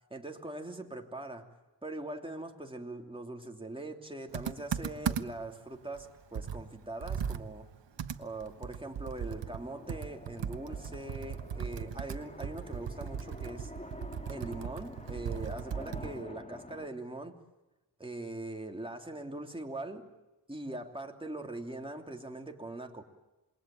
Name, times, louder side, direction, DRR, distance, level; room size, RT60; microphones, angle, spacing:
voice 1, 0.1-1.5 1.8-7.7 8.2-13.7 14.3-17.4 18.0-20.1 20.5-23.0, right 2 dB, 10° right, 3 dB, 3.0 m, -42 dB
Computer keyboard, 4.3-5.5 5.9-6.0 6.3-16.2, right 7 dB, 75° right, 1.3 m, -38 dB
sound 1, 7.9-16.9, left 1 dB, 15° left, 2.7 m, -49 dB
27.5 x 21.5 x 9.0 m, 1.1 s
wide cardioid pair, 90°, 43 cm